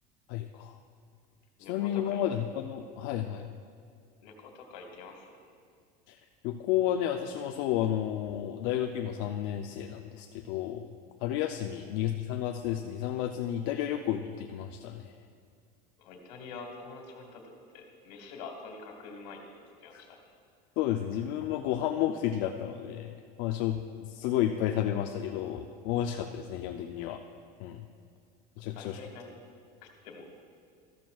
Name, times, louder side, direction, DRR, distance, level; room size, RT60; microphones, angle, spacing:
voice 1, 0.3-0.8 1.7-3.5 6.1-6.2 6.4-10.9 11.2-15.1 19.9-20.0 20.8-27.2 27.6-27.8 28.6-29.0, left 11 dB, 65° left, 4 dB, 0.5 m, -31 dB
voice 2, 1.6-2.2 4.2-5.3 11.7-11.8 16.0-17.4 17.7-19.4 19.8-20.2 28.7-29.3 29.8-30.4, left 4 dB, 80° left, 3 dB, 1.7 m, -46 dB
13.5 x 12.0 x 2.3 m, 2.3 s
supercardioid pair, 120°, 21 cm